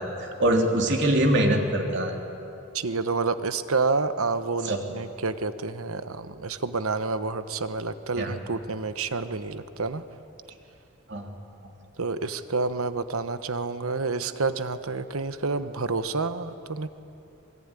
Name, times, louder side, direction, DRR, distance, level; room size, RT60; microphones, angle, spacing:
voice 1, 0.0-2.1 4.6-4.8 8.1-8.3 11.1-11.3 11.6-11.7, right 1 dB, 55° right, 2 dB, 3.3 m, -24 dB
voice 2, 2.7-10.0 12.0-16.9, right 4 dB, 75° right, 11 dB, 1.1 m, -29 dB
26.0 x 23.0 x 9.9 m, 2.8 s
head